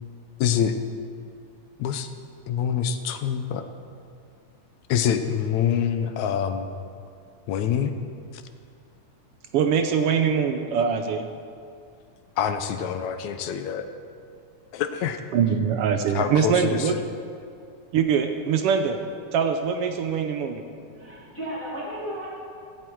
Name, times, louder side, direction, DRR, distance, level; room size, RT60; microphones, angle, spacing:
voice 1, 0.4-0.8 1.8-2.1 2.5-3.7 4.9-6.7 7.5-8.0 8.3-8.4 12.4-13.9 14.7-15.2 16.2-17.1, left 8 dB, 75° left, 8 dB, 2.0 m, -25 dB
voice 2, 9.5-11.3 15.3-16.9 17.9-19.0 19.3-20.6, right 7 dB, 85° right, 7 dB, 1.3 m, -23 dB
voice 3, 20.8-22.3, equal, 25° left, -7 dB, 2.6 m, -34 dB
16.5 x 15.5 x 4.6 m, 2.3 s
omnidirectional pair, 3.6 m